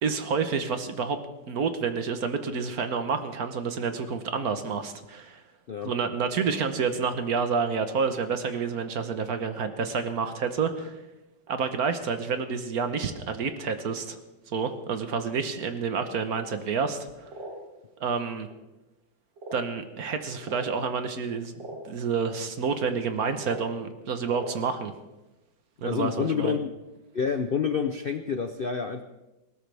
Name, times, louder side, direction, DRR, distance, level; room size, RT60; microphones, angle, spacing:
voice 1, 0.0-1.2 1.5-5.4 5.8-10.9 11.5-14.2 14.5-17.1 18.0-18.5 19.5-24.9 25.8-26.6, right 5 dB, 55° right, 8 dB, 1.5 m, -29 dB
sound 1, 17.3-17.5 18.4-18.5 19.4-19.7 20.4-20.7 21.5-21.8 23.4-23.7 24.3-24.6, right 1 dB, 80° right, 3.9 m, -39 dB
voice 2, 25.8-26.7 27.1-29.0, left 6 dB, 90° left, 7 dB, 0.4 m, -28 dB
19.5 x 17.5 x 3.5 m, 1.0 s
omnidirectional pair, 2.0 m